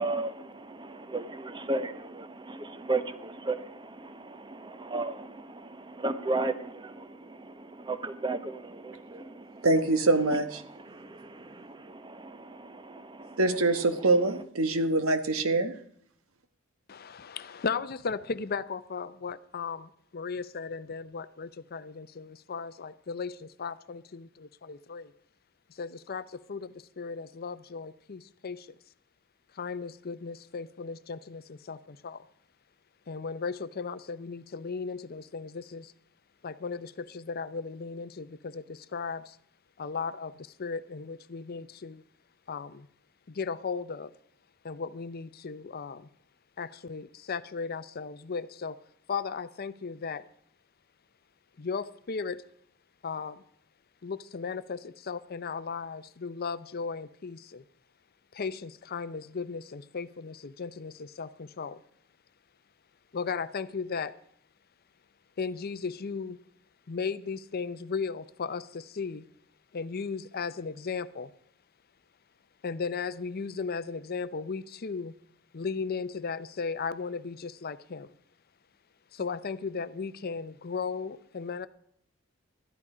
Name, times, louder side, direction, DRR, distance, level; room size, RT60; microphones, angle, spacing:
voice 1, 0.0-9.7 10.3-13.4, right 2 dB, 20° right, 0.8 m, -35 dB
voice 2, 9.6-10.6 13.4-15.7, right 2 dB, 85° right, 1.3 m, -24 dB
voice 3, 16.9-25.1 25.7-28.7 29.5-32.2 33.1-35.9 36.4-39.4 39.8-42.0 42.5-42.9 43.3-44.1 44.6-46.1 46.6-48.8 49.1-50.2 51.6-52.4 53.0-53.4 54.0-57.6 58.3-61.8 63.1-64.1 65.4-66.4 66.9-69.2 69.7-71.3 72.6-75.1 75.5-78.1 79.1-81.7, left 5 dB, 45° left, 0.6 m, -36 dB
13.0 x 11.0 x 4.9 m
head